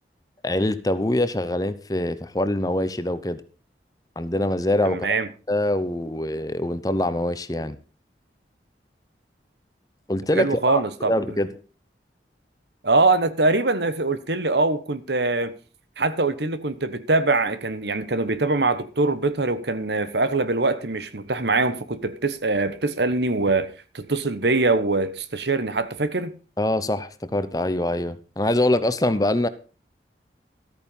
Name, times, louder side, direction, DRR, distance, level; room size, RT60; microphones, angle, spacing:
voice 1, 0.4-3.4 4.2-5.1 5.5-7.8 10.1-11.5 26.6-29.5, left 1 dB, 20° left, 0.8 m, -24 dB
voice 2, 4.8-5.3 10.4-11.1 12.8-15.6 16.0-26.3, right 3 dB, 75° right, 1.2 m, -23 dB
13.5 x 9.2 x 5.4 m
head